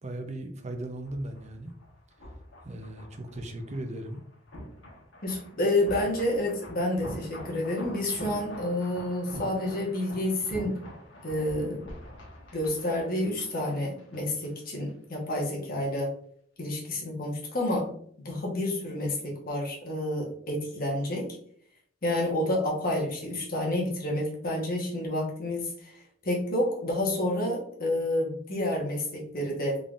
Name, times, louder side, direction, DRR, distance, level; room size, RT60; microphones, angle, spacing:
voice 1, 0.0-1.7 2.6-4.2, right 1 dB, 35° right, 6 dB, 0.5 m, -37 dB
sound 1, 0.7-14.5 14.7-14.9, left 1 dB, 70° left, 1.1 m, -45 dB
voice 2, 5.2-10.8 11.2-11.9 12.5-16.1 16.6-17.9 18.2-21.3 22.0-29.8, left 1 dB, 50° left, -2 dB, 1.1 m, -29 dB
3.7 x 3.7 x 2.4 m, 0.62 s
head